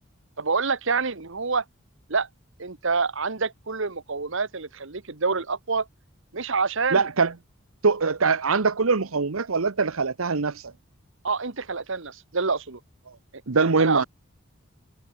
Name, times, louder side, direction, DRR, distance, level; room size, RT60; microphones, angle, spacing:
voice 1, 0.4-1.6 2.1-2.3 2.6-5.9 6.3-7.1 11.2-12.8 13.6-14.1, right 4 dB, 65° right, 1.4 m, -27 dB
voice 2, 6.9-7.3 7.8-10.7 13.5-14.0, right 4 dB, 90° right, 1.0 m, -22 dB
head